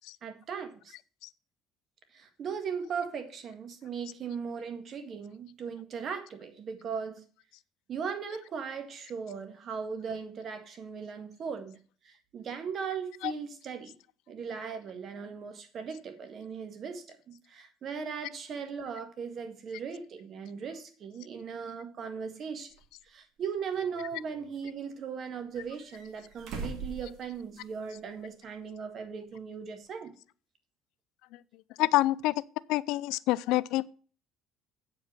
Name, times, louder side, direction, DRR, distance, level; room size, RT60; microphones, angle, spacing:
voice 1, 0.2-0.9 2.1-7.2 7.9-11.8 12.0-14.0 14.3-22.7 23.0-30.1, right 6 dB, 45° right, 1.8 m, -38 dB
sound 1, 22.7-22.8 23.7-24.6 25.5-27.9 28.2-28.3 29.9-30.0, right 4 dB, 65° right, 2.4 m, -42 dB
voice 2, 31.8-32.4 32.7-33.9, left 17 dB, 80° left, 0.4 m, -27 dB
8.5 x 5.2 x 7.4 m
cardioid pair, 105°, 0 cm